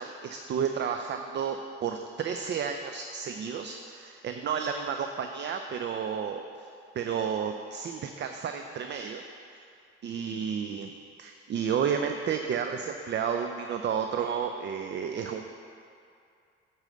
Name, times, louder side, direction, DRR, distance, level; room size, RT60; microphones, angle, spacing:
voice 1, 0.0-6.7 6.9-9.2 10.0-10.9 11.2-15.5, right 7 dB, 35° right, 6 dB, 0.5 m, -32 dB
8.9 x 4.1 x 6.5 m, 2.5 s
figure-of-eight pair, 50°, 33 cm